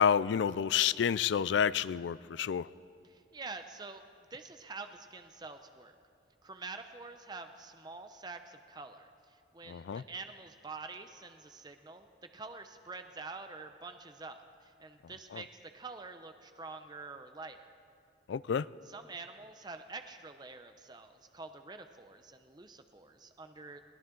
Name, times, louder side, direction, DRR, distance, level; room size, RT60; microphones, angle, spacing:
voice 1, 0.0-2.7 9.7-10.0 15.3-15.4 18.3-18.7, left 8 dB, 75° left, 19 dB, 0.3 m, -29 dB
voice 2, 3.0-4.0 4.3-6.0 6.4-12.1 12.3-17.7 18.8-23.8, right 3 dB, 20° right, 7 dB, 0.6 m, -47 dB
21.0 x 17.0 x 3.8 m, 2.4 s
head